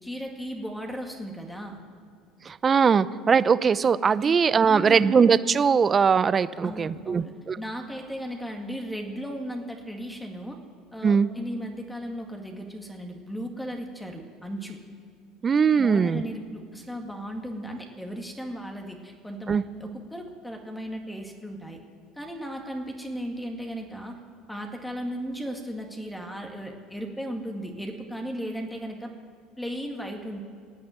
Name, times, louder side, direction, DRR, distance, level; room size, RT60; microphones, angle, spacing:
voice 1, 0.0-1.8 4.2-4.4 4.7-5.0 6.6-10.6 10.9-14.8 15.8-21.8 22.2-24.2 24.5-29.1 29.6-30.4, equal, 5° left, 2 dB, 2.1 m, -36 dB
voice 2, 2.4-7.6 11.0-11.3 15.4-16.2 19.5-19.6, right 6 dB, 35° right, 17 dB, 0.6 m, -21 dB
17.0 x 8.6 x 9.3 m, 2.2 s
supercardioid pair, 85°, 0 cm